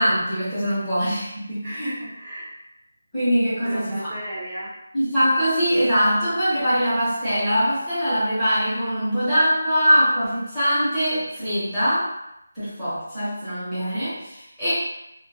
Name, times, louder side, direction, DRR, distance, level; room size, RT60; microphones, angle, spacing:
voice 1, 0.0-1.9 3.1-4.1 4.9-12.1 12.5-14.7, equal, ahead, -19 dB, 0.8 m, -22 dB
voice 2, 1.6-2.5 3.6-4.7, right 1 dB, 25° right, -9 dB, 0.5 m, -34 dB
2.2 x 2.2 x 2.8 m, 0.84 s
figure-of-eight pair, 175°, 0 cm